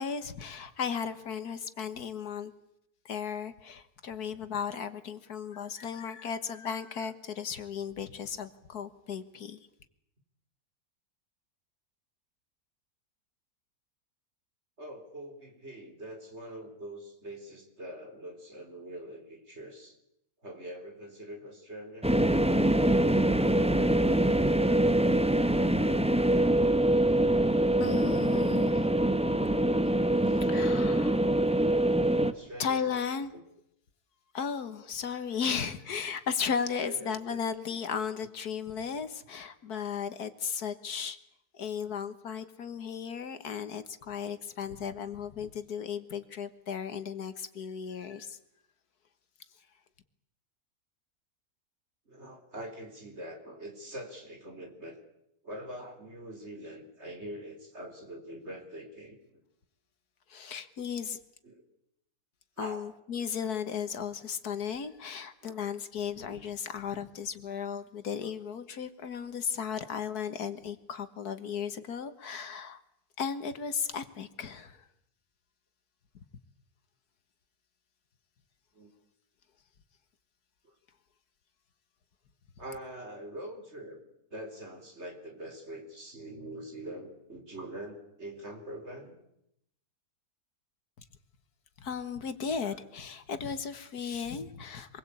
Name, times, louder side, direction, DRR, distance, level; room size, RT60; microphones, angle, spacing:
voice 1, 0.0-2.5 3.1-9.7 27.8-28.9 30.2-31.2 32.6-33.3 34.3-41.2 41.5-48.4 60.3-61.2 62.6-72.8 73.2-74.8 91.8-95.0, left 7 dB, 75° left, 11 dB, 1.9 m, -35 dB
voice 2, 14.8-20.0 20.4-22.2 32.2-33.1 33.3-33.4 36.8-37.4 37.7-37.8 52.1-55.0 55.4-59.4 61.4-61.6 62.6-62.9 65.4-65.6 68.2-68.3 78.7-78.9 80.6-80.7 82.6-84.0 84.3-89.2 92.6-92.8, right 1 dB, 45° right, 4 dB, 4.4 m, -44 dB
sound 1, 22.0-32.3, right 1 dB, 5° right, 0.6 m, -24 dB
26.0 x 21.0 x 8.4 m, 0.79 s
omnidirectional pair, 1.7 m